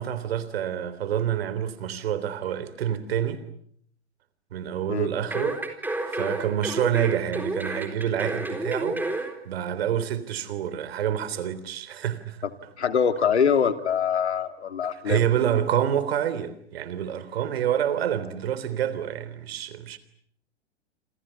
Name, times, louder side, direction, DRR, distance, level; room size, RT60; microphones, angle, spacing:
voice 1, 0.0-3.4 4.5-5.6 6.1-12.5 15.1-20.0, right 10 dB, 60° right, 3.6 m, -27 dB
sound 1, 5.3-9.3 9.7-9.8, right 2 dB, 5° right, 4.1 m, -30 dB
voice 2, 12.8-15.2, left 7 dB, 75° left, 2.6 m, -23 dB
28.0 x 28.0 x 7.0 m
figure-of-eight pair, 105°, 34 cm